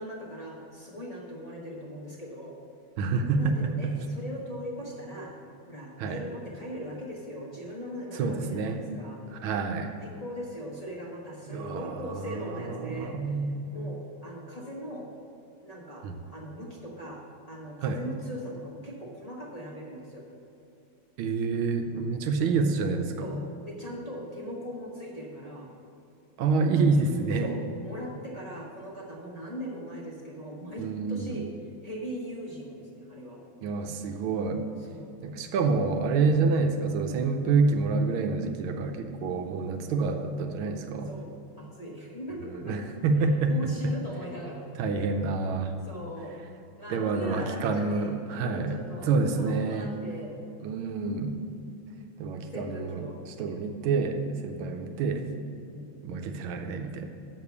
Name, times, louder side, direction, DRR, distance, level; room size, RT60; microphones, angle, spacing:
voice 1, 0.0-2.6 3.4-5.3 5.7-9.2 9.7-13.4 13.7-15.0 15.6-16.1 16.3-17.2 17.5-20.2 23.2-25.7 27.4-31.5 31.8-33.4 34.9-35.1 41.1-42.7 43.5-44.7 45.8-46.4 46.8-50.3 52.5-53.6 55.7-56.1, equal, 25° left, -3 dB, 0.9 m, -40 dB
voice 2, 3.0-3.9 6.0-6.2 8.2-8.8 9.3-9.9 11.5-13.7 16.0-16.2 17.8-18.0 21.2-23.3 26.4-27.5 30.8-31.3 33.6-34.6 35.2-41.1 42.5-43.6 43.8-43.9 44.8-45.7 46.9-49.9 50.6-51.3 52.2-53.1 53.4-55.3 56.0-57.1, right 4 dB, 85° right, 5 dB, 1.5 m, -27 dB
6.8 x 6.6 x 7.1 m, 2.8 s
omnidirectional pair, 2.2 m